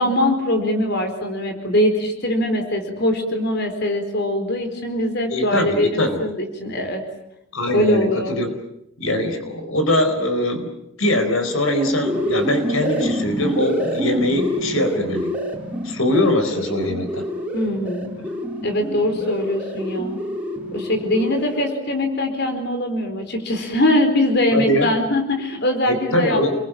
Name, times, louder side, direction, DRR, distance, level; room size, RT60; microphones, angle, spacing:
voice 1, 0.0-7.0 7.7-8.4 17.5-18.1 18.6-20.2 20.7-26.6, left 1 dB, 50° left, 6 dB, 4.5 m, -22 dB
voice 2, 5.3-6.2 7.5-8.5 9.0-10.7 11.0-15.3 15.8-17.2 24.5-24.9 25.9-26.5, left 1 dB, 75° left, 7 dB, 4.4 m, -22 dB
sound 1, 11.3-21.8, equal, 5° right, 3.8 m, -27 dB
29.0 x 22.5 x 9.1 m, 0.80 s
head